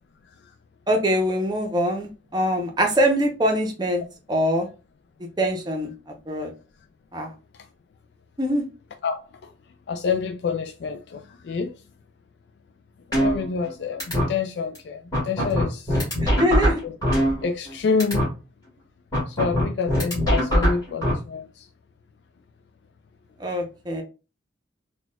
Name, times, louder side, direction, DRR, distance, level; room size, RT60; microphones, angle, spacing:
voice 1, 0.9-4.0 4.3-4.7 5.4-5.9 6.3-6.5 7.1-7.3 8.4-8.6 16.2-16.8 23.4-24.0, equal, 20° right, 0.6 m, -23 dB
voice 2, 9.0-9.5 9.9-11.7 13.1-16.0 16.8-16.9 17.4-18.3 19.3-21.7, left 5 dB, 60° left, 0.3 m, -27 dB
sound 1, 13.1-13.7 14.0-14.2 14.7-14.8 15.1-17.7 18.0-18.2 19.1-21.1, equal, 20° left, 1.7 m, -21 dB
4.2 x 2.3 x 2.2 m
head